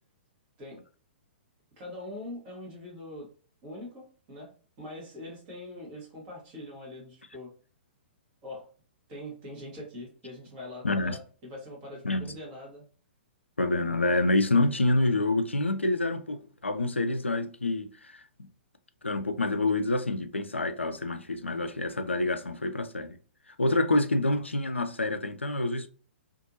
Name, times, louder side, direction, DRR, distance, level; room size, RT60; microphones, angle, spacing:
voice 1, 1.8-3.3 3.6-4.5 4.8-7.5 8.4-8.7 9.1-12.8, left 1 dB, 30° right, 1.2 m, -43 dB
voice 2, 10.8-11.2 12.0-12.3 13.6-18.2 19.0-23.2 23.6-25.9, left 2 dB, 85° left, 0.4 m, -27 dB
2.6 x 2.5 x 2.5 m
figure-of-eight pair, 115°, 6 cm